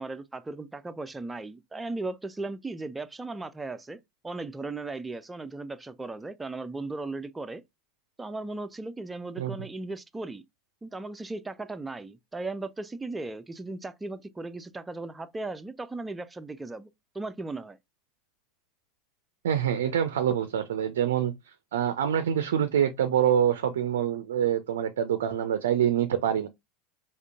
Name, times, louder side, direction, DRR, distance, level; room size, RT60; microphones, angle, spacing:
voice 1, 0.0-7.6 8.2-10.4 10.8-16.9 17.1-17.8, right 2 dB, 10° right, 0.4 m, -37 dB
voice 2, 19.4-26.5, right 9 dB, 70° right, 0.4 m, -26 dB
5.0 x 2.5 x 2.3 m
figure-of-eight pair, 80°, 0 cm